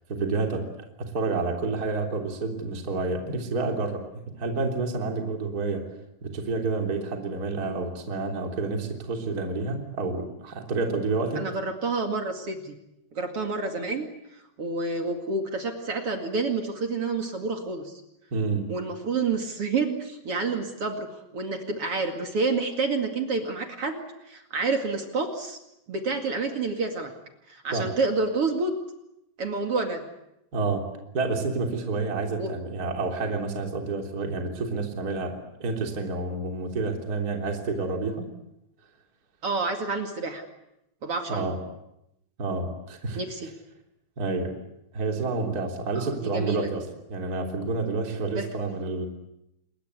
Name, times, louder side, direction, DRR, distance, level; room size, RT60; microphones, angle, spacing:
voice 1, 0.1-0.7 1.0-4.0 4.3-5.8 6.2-11.5 18.3-18.7 27.7-27.9 30.5-30.9 31.1-38.3 41.3-41.6 42.4-43.2 44.2-44.6 44.9-46.8 47.1-49.1, right 3 dB, 20° right, 2 dB, 3.0 m, -29 dB
voice 2, 11.3-12.8 13.1-14.1 14.6-18.0 18.7-21.1 21.3-25.6 25.9-27.1 27.5-28.7 29.4-30.0 32.4-32.5 39.4-40.4 41.0-41.5 43.1-43.5 46.0-46.7 48.3-48.5, right 3 dB, 40° right, 4 dB, 2.2 m, -29 dB
28.0 x 21.5 x 8.3 m, 0.85 s
omnidirectional pair, 5.5 m